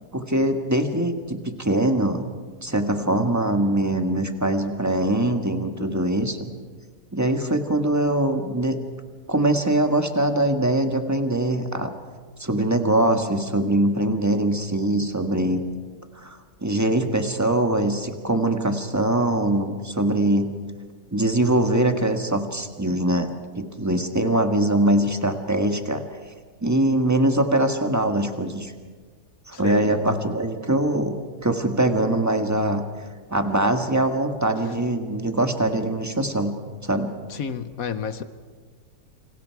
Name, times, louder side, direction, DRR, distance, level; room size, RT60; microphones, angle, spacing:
voice 1, 0.1-2.2 2.6-6.5 7.1-8.8 9.3-11.9 12.4-15.6 16.2-20.5 21.1-26.0 26.6-28.7 29.5-31.1 31.4-32.8 33.3-36.5 36.8-37.1, right 1 dB, 10° right, 5 dB, 1.5 m, -22 dB
voice 2, 29.5-29.9 34.6-34.7 37.3-38.2, left 7 dB, 60° left, 12 dB, 1.3 m, -31 dB
29.0 x 26.0 x 4.7 m, 1.5 s
omnidirectional pair, 1.7 m